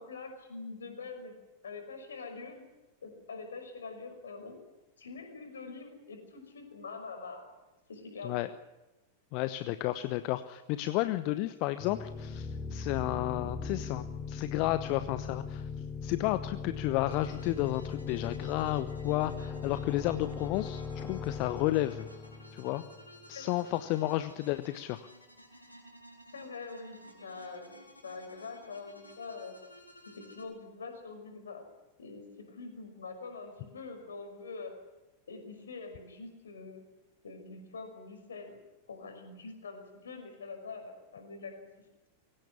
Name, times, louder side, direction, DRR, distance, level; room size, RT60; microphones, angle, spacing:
voice 1, 0.0-1.3 1.6-2.7 3.0-4.6 5.0-7.4 7.9-8.5 23.3-23.6 24.1-24.3 26.3-29.6 30.1-31.6 32.0-34.8 35.3-36.9 37.2-38.6 38.9-41.7, left 4 dB, 70° left, 5 dB, 5.8 m, -44 dB
voice 2, 9.3-15.7 16.0-22.1 22.5-22.8 23.3-25.1, left 16 dB, 45° left, 12 dB, 0.9 m, -32 dB
sound 1, 11.8-23.4, left 5 dB, 10° left, 3.6 m, -39 dB
sound 2, 17.1-30.4, equal, 90° left, 4.6 m, -55 dB
23.0 x 17.0 x 9.9 m, 1.1 s
figure-of-eight pair, 90°, 0 cm